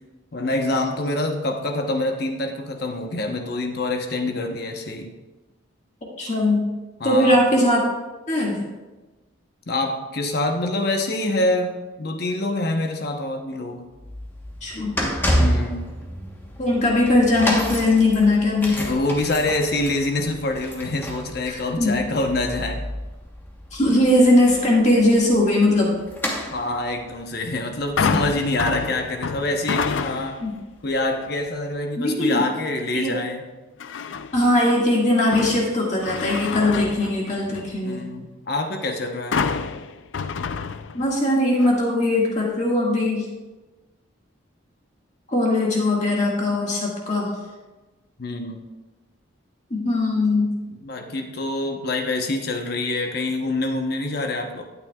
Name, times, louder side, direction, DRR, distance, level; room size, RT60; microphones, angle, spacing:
voice 1, 0.3-5.1 7.0-7.4 9.7-13.8 15.4-15.9 18.7-22.8 26.5-30.4 30.8-33.4 37.9-39.5 48.2-48.6 50.8-54.6, left 2 dB, 50° left, 3 dB, 0.9 m, -26 dB
voice 2, 6.2-6.6 7.0-7.9 8.3-8.7 14.6-14.9 16.6-18.8 21.5-22.0 23.7-26.0 28.0-28.2 30.4-30.5 32.0-32.4 32.9-33.1 34.3-38.0 40.9-43.3 45.3-47.3 49.7-50.5, left 1 dB, 35° left, -3 dB, 1.9 m, -20 dB
sound 1, 13.9-30.9 31.5-31.6, equal, 10° left, 1.1 m, -30 dB
sound 2, 28.0-30.5 31.0-31.4 33.8-34.5 34.9-37.8 39.3-41.3 41.6-41.7, left 5 dB, 70° left, 0.4 m, -28 dB
12.5 x 9.1 x 2.4 m, 1.2 s
head